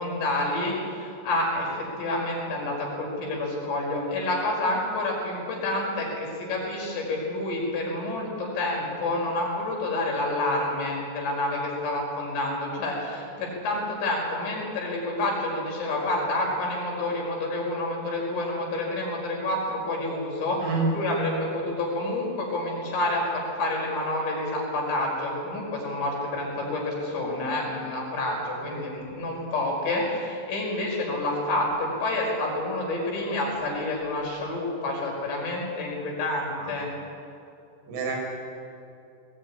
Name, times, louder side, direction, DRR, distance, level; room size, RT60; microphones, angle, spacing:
voice 1, 0.0-36.9, left 2 dB, 60° left, -1 dB, 7.2 m, -28 dB
voice 2, 20.6-21.0 28.6-28.7 36.6-36.7 37.9-38.2, right 3 dB, 85° right, 0 dB, 7.8 m, -28 dB
21.5 x 19.0 x 9.9 m, 2.6 s
omnidirectional pair, 5.8 m